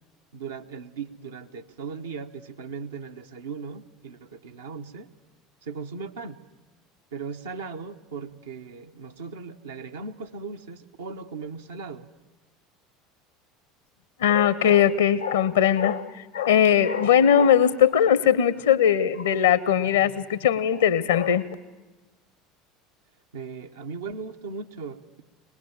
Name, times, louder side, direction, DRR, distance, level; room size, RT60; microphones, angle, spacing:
voice 1, 0.3-5.1 5.6-6.4 7.1-12.1 23.3-25.2, right 5 dB, 75° right, 5 dB, 0.9 m, -38 dB
voice 2, 14.2-21.4, left 9 dB, 70° left, 17 dB, 0.8 m, -20 dB
23.0 x 20.0 x 7.3 m, 1.1 s
figure-of-eight pair, 70°, 0 cm